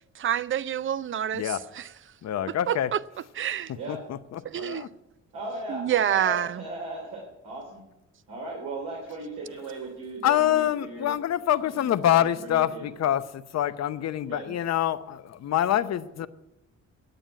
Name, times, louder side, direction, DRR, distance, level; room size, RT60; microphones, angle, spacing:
voice 1, 0.2-1.9 2.7-3.0 3.4-3.7 4.4-4.8 5.7-6.6, right 10 dB, 40° right, 18 dB, 0.5 m, -27 dB
voice 2, 2.2-2.9 3.9-4.9 10.2-16.3, left 11 dB, 60° left, 12 dB, 0.8 m, -26 dB
voice 3, 5.3-7.8 8.3-11.1 11.6-12.9 14.3-14.5, right 2 dB, 85° right, -2 dB, 3.3 m, -37 dB
9.2 x 8.8 x 9.3 m, 0.94 s
cardioid pair, 90°, 30 cm